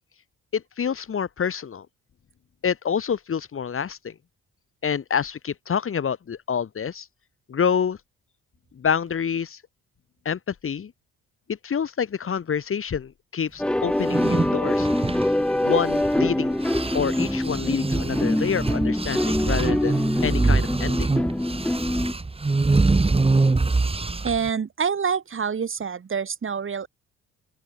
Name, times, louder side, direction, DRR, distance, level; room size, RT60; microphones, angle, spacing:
voice 1, 0.5-1.9 2.6-4.1 4.8-7.1 7.5-8.0 8.7-9.6 10.2-10.9 11.5-14.9 15.6-16.6 16.9-21.1, left 7 dB, 45° left, 2.4 m, -27 dB
sound 1, 13.6-22.1, left 1 dB, 5° left, 0.4 m, -24 dB
sound 2, 13.9-16.3 16.6-24.5, right 3 dB, 20° right, 2.3 m, -24 dB
voice 2, 24.2-26.9, right 6 dB, 40° right, 4.5 m, -26 dB
open air
cardioid pair, 90°, 30 cm